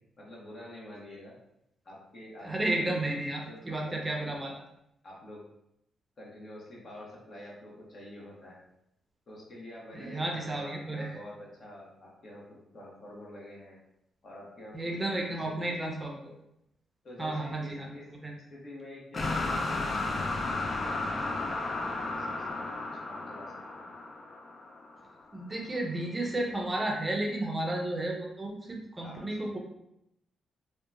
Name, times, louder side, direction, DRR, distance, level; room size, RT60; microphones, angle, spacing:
voice 1, 0.2-1.3 1.8-3.2 3.4-4.5 5.0-5.4 6.2-8.6 9.3-13.8 14.2-15.8 17.0-18.1 18.5-23.9 29.0-29.6, left 1 dB, 55° left, -4 dB, 1.0 m, -47 dB
voice 2, 2.4-4.5 9.9-11.2 14.7-16.3 17.2-17.9 18.2-18.3 25.3-29.6, right 1 dB, 25° right, 0 dB, 0.5 m, -32 dB
sound 1, 19.1-25.2, left 2 dB, 40° left, 0.3 m, -33 dB
2.8 x 2.2 x 2.4 m, 0.81 s
cardioid pair, 70°, 0 cm